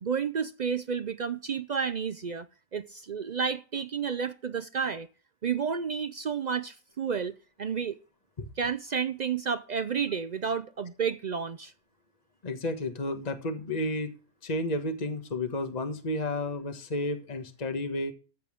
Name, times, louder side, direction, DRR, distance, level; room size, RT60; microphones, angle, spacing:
voice 1, 0.0-2.5 2.7-5.1 5.4-8.0 8.6-11.7, right 6 dB, 70° right, 0.4 m, -31 dB
voice 2, 12.4-14.1 14.4-18.1, left 1 dB, 30° left, 1.5 m, -32 dB
14.0 x 8.4 x 3.5 m
omnidirectional pair, 1.5 m